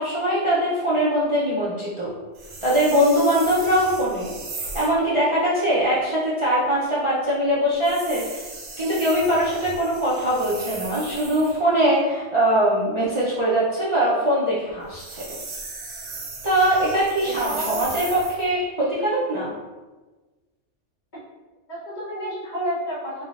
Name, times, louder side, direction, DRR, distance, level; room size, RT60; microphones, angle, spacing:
voice 1, 0.0-2.1 2.6-4.3 4.7-8.4 8.8-15.2 16.4-19.5, right 1 dB, 30° right, -9 dB, 0.7 m, -22 dB
sound 1, 2.3-5.0 7.8-11.6 14.8-18.5, right 3 dB, 60° right, 1.0 m, -37 dB
voice 2, 17.4-17.8 21.7-23.2, equal, 40° left, -8 dB, 1.1 m, -30 dB
3.7 x 3.6 x 2.5 m, 1.2 s
omnidirectional pair, 1.2 m